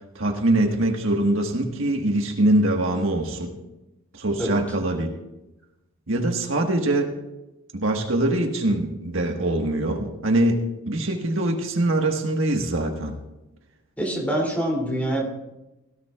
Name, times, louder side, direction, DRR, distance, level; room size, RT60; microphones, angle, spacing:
voice 1, 0.1-3.5 4.1-5.1 6.1-7.1 7.7-10.6 10.9-13.1, right 1 dB, 70° right, 3 dB, 1.5 m, -23 dB
voice 2, 14.0-15.3, right 1 dB, 5° left, -1 dB, 2.9 m, -25 dB
17.5 x 16.5 x 2.4 m, 0.97 s
head